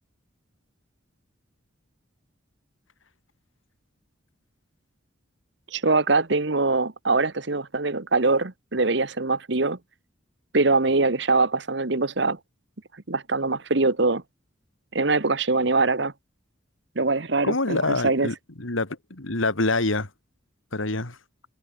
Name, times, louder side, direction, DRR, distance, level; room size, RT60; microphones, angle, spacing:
voice 1, 5.7-9.8 10.5-12.4 13.1-14.2 14.9-16.1 16.9-18.3, right 3 dB, 60° right, 1.3 m, -23 dB
voice 2, 17.4-20.1 20.7-21.2, left 2 dB, 85° left, 2.6 m, -26 dB
head